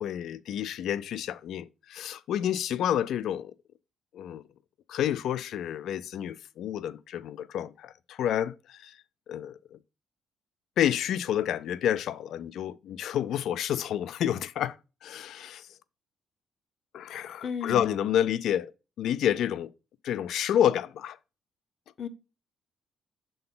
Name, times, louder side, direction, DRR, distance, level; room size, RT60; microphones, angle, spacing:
voice 1, 0.0-3.5 4.1-4.4 4.9-9.0 9.3-9.8 10.8-15.7 16.9-18.7 19.0-19.7 20.0-21.2, left 10 dB, 75° left, 0.4 m, -29 dB
voice 2, 17.4-17.9 22.0-22.1, left 6 dB, 50° left, 0.7 m, -33 dB
6.6 x 3.8 x 3.8 m
cardioid pair, 90°, 0 cm